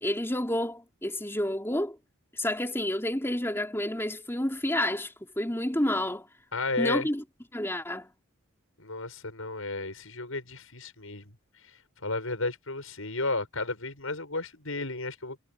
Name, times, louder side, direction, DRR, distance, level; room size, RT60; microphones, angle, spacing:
voice 1, 0.0-2.0 2.3-6.3 6.8-7.2 7.5-8.1, left 1 dB, 10° left, 3.3 m, -29 dB
voice 2, 6.5-7.1 8.8-15.4, left 3 dB, 75° left, 7.6 m, -33 dB
head